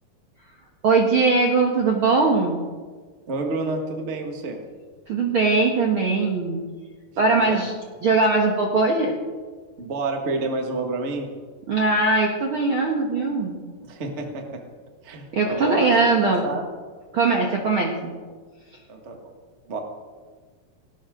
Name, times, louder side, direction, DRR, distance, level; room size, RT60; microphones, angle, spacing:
voice 1, 0.8-2.6 5.1-6.6 7.2-7.7 8.0-9.1 11.7-13.6 15.3-16.4 17.1-18.1, right 3 dB, 50° right, 0 dB, 1.6 m, -20 dB
voice 2, 3.3-4.6 7.2-7.6 9.8-11.3 13.9-14.6 15.0-16.7 18.9-19.3 19.7-19.8, right 3 dB, 30° right, 2 dB, 1.3 m, -29 dB
18.5 x 18.0 x 3.8 m, 1.5 s
omnidirectional pair, 4.3 m